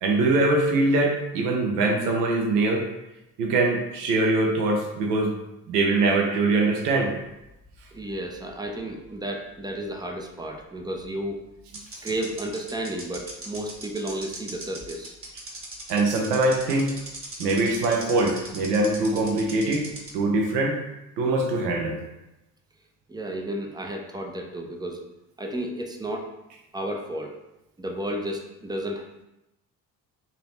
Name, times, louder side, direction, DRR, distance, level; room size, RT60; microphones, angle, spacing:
voice 1, 0.0-2.8 3.4-5.3 5.7-7.1 15.9-16.9 17.4-19.8 20.1-20.8 21.2-22.0, right 2 dB, 75° right, 1 dB, 0.7 m, -23 dB
sound 1, 7.2-8.8 9.1-9.2 11.0-11.1 11.7-20.1, right 2 dB, 25° right, 1.2 m, -39 dB
voice 2, 7.9-11.5 12.0-15.1 23.1-25.0 25.4-26.3 26.7-27.3 27.8-29.2, right 1 dB, 10° right, 2 dB, 0.4 m, -32 dB
3.8 x 2.8 x 3.1 m, 0.92 s
figure-of-eight pair, 50°, 48 cm